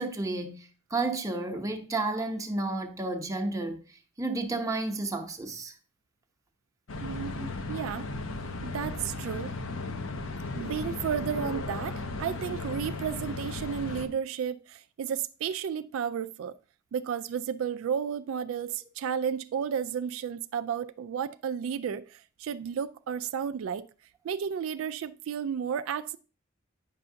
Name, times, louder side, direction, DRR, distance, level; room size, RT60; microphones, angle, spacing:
voice 1, 0.0-3.8 4.2-5.7 7.4-7.5, right 2 dB, 15° right, 0.7 m, -31 dB
sound 1, 6.9-14.1, left 2 dB, 80° left, 0.7 m, -36 dB
voice 2, 7.0-7.3 7.7-8.1 8.6-9.5 10.5-16.6 16.9-23.9 24.2-26.2, right 7 dB, 80° right, 0.3 m, -32 dB
8.9 x 5.6 x 2.6 m
head